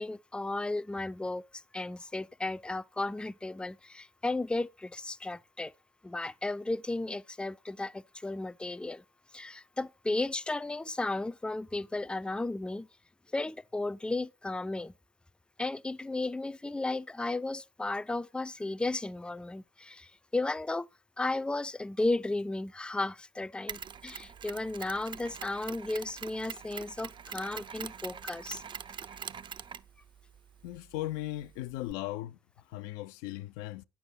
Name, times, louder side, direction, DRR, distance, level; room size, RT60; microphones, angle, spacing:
voice 1, 0.0-5.7 6.0-9.0 9.3-12.9 13.3-14.9 15.6-20.9 21.2-28.6, left 2 dB, 5° left, 0.5 m, -34 dB
Mechanisms, 23.7-31.9, right 7 dB, 35° right, 0.7 m, -44 dB
voice 2, 30.6-32.4 32.7-33.8, left 15 dB, 70° left, 0.5 m, -37 dB
9.8 x 7.0 x 5.7 m
figure-of-eight pair, 50°, 13 cm